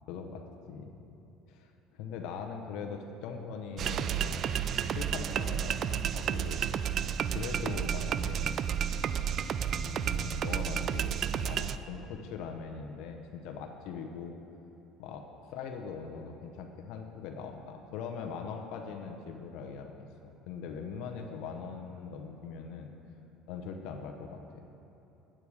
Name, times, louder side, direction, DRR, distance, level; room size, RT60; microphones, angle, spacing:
voice 1, 0.1-0.9 1.5-4.6 4.9-6.6 7.3-8.6 9.8-11.1 11.4-14.4 15.0-15.2 15.5-22.9 23.5-24.6, left 5 dB, 70° left, 4 dB, 0.8 m, -41 dB
sound 1, 3.8-11.8, right 8 dB, 50° right, 0.3 m, -31 dB
8.8 x 8.5 x 4.8 m, 3.0 s
supercardioid pair, 95°, 0 cm